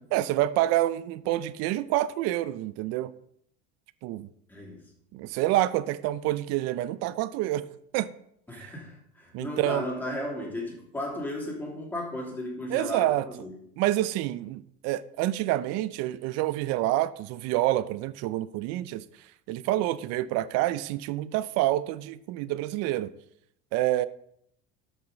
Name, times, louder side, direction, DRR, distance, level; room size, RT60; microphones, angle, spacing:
voice 1, 0.1-3.1 4.0-4.3 5.1-7.7 7.9-8.1 8.6-8.7 9.3-9.8 12.7-13.3 13.8-19.0 19.5-23.1 23.7-24.1, right 15 dB, 55° right, 0.5 m, -27 dB
voice 2, 4.5-4.8 8.5-13.5, left 1 dB, 5° left, 2.9 m, -35 dB
13.5 x 5.7 x 3.9 m
cardioid pair, 145°, 31 cm